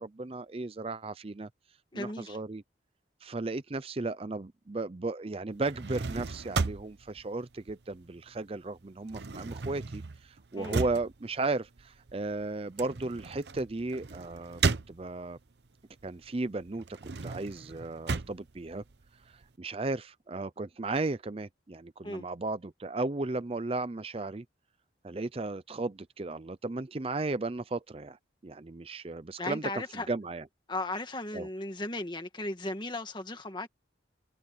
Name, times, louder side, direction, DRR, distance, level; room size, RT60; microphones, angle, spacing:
voice 1, 0.0-1.5 1.9-2.6 3.2-14.6 14.9-15.4 16.0-18.8 19.3-24.4 25.0-28.2 28.4-30.4 31.3-31.5, right 2 dB, 30° right, 0.5 m, -35 dB
voice 2, 1.9-2.4 10.6-10.8 22.0-22.3 29.4-30.1 30.7-33.7, left 2 dB, 25° left, 1.8 m, -36 dB
sound 1, 5.5-8.4 8.7-15.5 15.9-19.5, right 4 dB, 65° right, 0.8 m, -35 dB
head